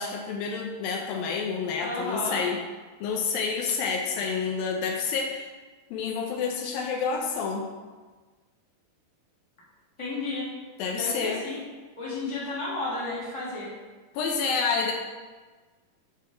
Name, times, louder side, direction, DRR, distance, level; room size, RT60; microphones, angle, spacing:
voice 1, 0.0-2.6 3.0-5.5 5.9-7.7 10.8-11.4 14.1-14.9, left 5 dB, 80° left, 1 dB, 2.5 m, -28 dB
voice 2, 1.8-2.4 10.0-10.5 10.9-11.6 12.0-13.7, left 2 dB, 10° left, -8 dB, 2.1 m, -32 dB
7.5 x 5.2 x 5.5 m, 1.4 s
omnidirectional pair, 4.3 m